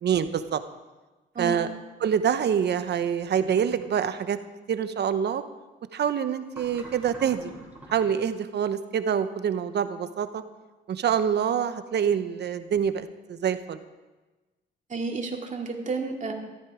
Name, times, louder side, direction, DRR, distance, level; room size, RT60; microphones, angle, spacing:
voice 1, 0.0-0.6 1.4-1.7 2.0-4.4 4.7-5.4 5.9-7.5 7.9-10.4 10.9-13.8, right 8 dB, 60° right, 11 dB, 1.0 m, -26 dB
sound 1, 3.4-3.9 6.5-8.3, right 2 dB, 10° right, 4.0 m, -45 dB
voice 2, 14.9-16.3, right 3 dB, 40° right, 1 dB, 2.4 m, -31 dB
14.0 x 13.5 x 5.0 m, 1.2 s
cardioid pair, 90°, 20 cm